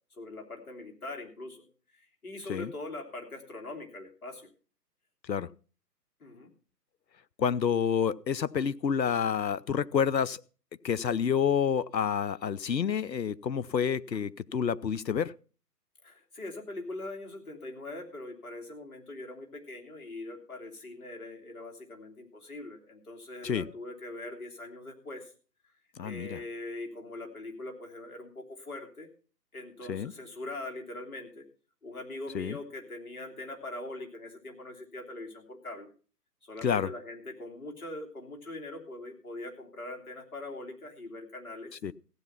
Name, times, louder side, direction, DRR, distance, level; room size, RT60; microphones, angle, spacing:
voice 1, 0.2-1.7 1.9-4.5 6.2-6.5 16.0-25.3 26.0-29.1 29.5-31.4 31.8-35.9 36.4-41.7, left 2 dB, 60° left, 2 dB, 3.2 m, -42 dB
voice 2, 7.4-10.4 10.8-15.3 23.4-23.7 26.0-26.4 29.9-30.1 32.3-32.6 36.6-36.9 41.8-41.9, left 7 dB, 90° left, 19 dB, 0.7 m, -28 dB
15.0 x 8.1 x 5.8 m, 0.39 s
figure-of-eight pair, 130°, 50 cm